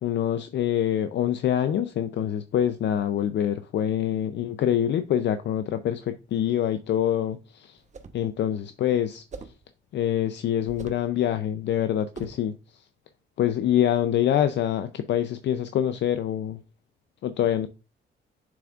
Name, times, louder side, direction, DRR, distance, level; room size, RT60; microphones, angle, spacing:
voice 1, 0.0-7.8 8.1-9.2 9.9-12.8 13.4-16.6 17.2-17.7, left 10 dB, 65° left, 10 dB, 0.5 m, -25 dB
sound 1, 7.8-8.3 9.3-9.6 10.7-11.1 12.1-12.5, right 4 dB, 35° right, 0.9 m, -41 dB
7.0 x 6.0 x 2.4 m, 0.29 s
cardioid pair, 90°, 20 cm